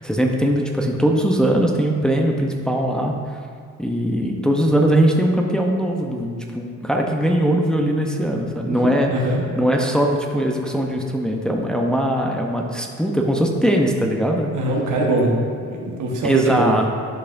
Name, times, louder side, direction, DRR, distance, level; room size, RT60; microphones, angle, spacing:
voice 1, 0.0-3.1 3.8-9.1 9.6-14.5 16.2-16.9, right 1 dB, 5° left, 1 dB, 0.7 m, -20 dB
voice 2, 9.1-9.4 14.5-15.3 15.7-16.7, right 2 dB, 80° right, -1 dB, 1.3 m, -22 dB
10.5 x 5.4 x 2.6 m, 2.2 s
cardioid pair, 90°, 30 cm